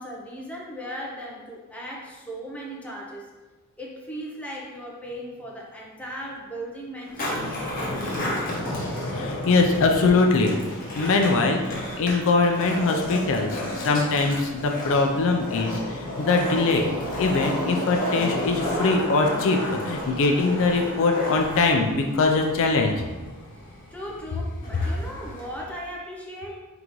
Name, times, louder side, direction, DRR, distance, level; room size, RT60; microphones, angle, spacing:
voice 1, 0.0-3.3 3.8-8.4 23.9-26.6, equal, 5° left, -3 dB, 0.6 m, -37 dB
Skateboard, 7.0-25.7, left 1 dB, 40° left, 1.0 m, -32 dB
voice 2, 8.4-16.9 17.2-22.9, left 3 dB, 60° left, 3 dB, 0.4 m, -22 dB
3.9 x 3.7 x 3.0 m, 1.2 s
head